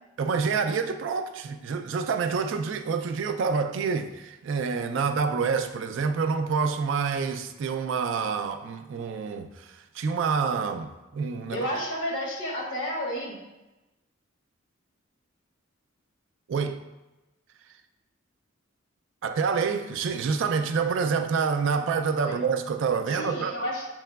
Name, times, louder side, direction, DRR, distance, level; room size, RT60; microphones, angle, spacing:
voice 1, 0.2-11.7 16.5-16.8 19.2-23.5, right 5 dB, 65° right, 0.3 m, -27 dB
voice 2, 11.5-13.4 22.2-22.4 23.1-23.9, equal, 60° left, 1.1 m, -31 dB
6.5 x 3.0 x 2.2 m
head